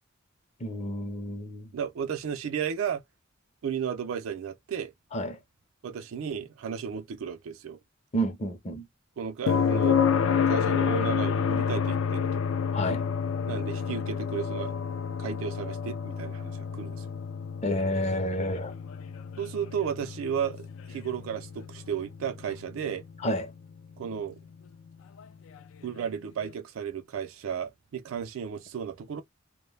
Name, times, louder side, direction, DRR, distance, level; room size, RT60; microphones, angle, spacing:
voice 1, 0.6-1.7 5.1-5.4 8.1-8.9 12.7-13.1 17.6-18.7 23.2-23.5, equal, 35° left, 0.6 m, -30 dB
voice 2, 1.7-3.0 3.6-4.9 5.8-7.8 9.2-10.0 10.5-12.4 13.5-14.7 15.2-17.0 19.4-23.0 24.0-24.4 25.8-29.2, right 7 dB, 85° right, 0.4 m, -34 dB
sound 1, 9.5-23.3 25.6-25.7, left 6 dB, 75° left, 0.3 m, -29 dB
2.1 x 2.0 x 3.1 m
head